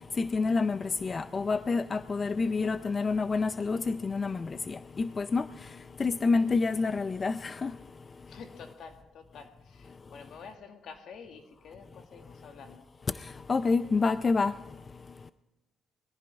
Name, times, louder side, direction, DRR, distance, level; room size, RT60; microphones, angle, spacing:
voice 1, 0.2-5.4 6.0-7.7 13.5-14.5, left 4 dB, 35° left, 13 dB, 0.4 m, -28 dB
voice 2, 8.3-12.9, left 5 dB, 70° left, 5 dB, 2.0 m, -49 dB
21.5 x 15.0 x 3.5 m, 1.2 s
cardioid pair, 90°, 0 cm